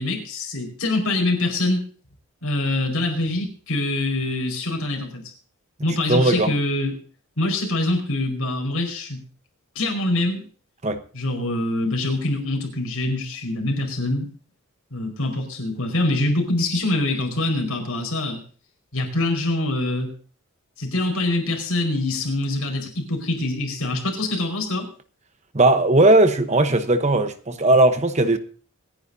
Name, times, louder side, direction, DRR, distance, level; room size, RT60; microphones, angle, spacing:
voice 1, 0.0-1.8 2.4-5.3 5.8-7.0 7.4-9.2 9.7-10.5 11.1-14.3 14.9-18.4 18.9-20.1 20.8-24.9, left 2 dB, 75° left, 4.9 m, -24 dB
voice 2, 6.1-6.5 10.8-11.0 25.5-28.4, right 2 dB, 30° right, 0.9 m, -17 dB
26.5 x 10.0 x 2.7 m
head